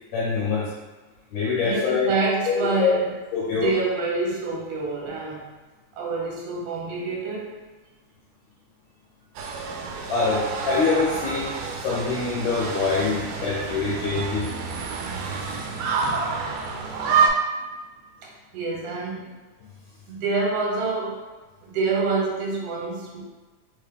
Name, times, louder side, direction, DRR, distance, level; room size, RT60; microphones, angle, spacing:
voice 1, 0.1-0.7 1.3-2.1 2.5-3.0 3.3-3.8 10.1-14.5, left 4 dB, 75° left, -5 dB, 1.7 m, -24 dB
voice 2, 1.6-3.1 3.6-5.5 5.9-7.5 18.2-19.4 20.1-21.2 21.6-23.2, right 3 dB, 65° right, -3 dB, 1.8 m, -27 dB
sound 1, 9.4-17.3, right 5 dB, 80° right, 1.8 m, -28 dB
4.2 x 3.5 x 3.3 m, 1.3 s
omnidirectional pair, 3.5 m